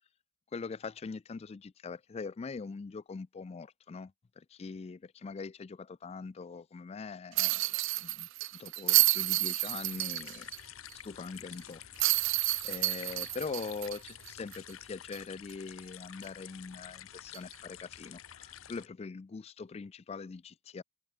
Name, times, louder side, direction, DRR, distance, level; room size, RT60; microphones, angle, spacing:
voice 1, 0.5-7.7 8.0-10.5 10.7-11.8 12.1-12.3 12.6-20.8, left 4 dB, 30° left, 0.3 m, -42 dB
sound 1, 7.4-10.6 10.9-11.0 12.0-14.7 15.1-15.2 17.3-17.5, right 21 dB, 60° right, 0.3 m, -29 dB
sound 2, 9.7-18.9, left 11 dB, 70° left, 0.8 m, -50 dB
head